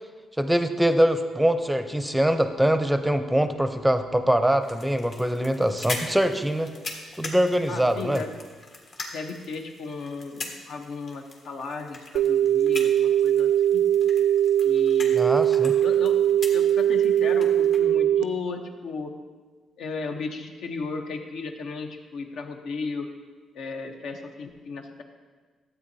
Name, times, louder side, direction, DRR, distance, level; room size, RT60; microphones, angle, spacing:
voice 1, 0.4-6.7 7.2-8.2 15.1-15.7, right 1 dB, 5° right, 9 dB, 0.6 m, -23 dB
sound 1, 4.6-17.8, left 2 dB, 55° left, 1.4 m, -41 dB
voice 2, 7.7-8.3 9.1-13.8 14.6-15.4 15.8-16.2 16.5-19.1 19.8-23.1 23.5-25.0, left 4 dB, 75° left, 4 dB, 0.9 m, -35 dB
sound 2, 12.2-18.2, right 10 dB, 85° right, 0.3 m, -21 dB
12.5 x 8.1 x 2.7 m, 1.4 s
cardioid pair, 90°, 0 cm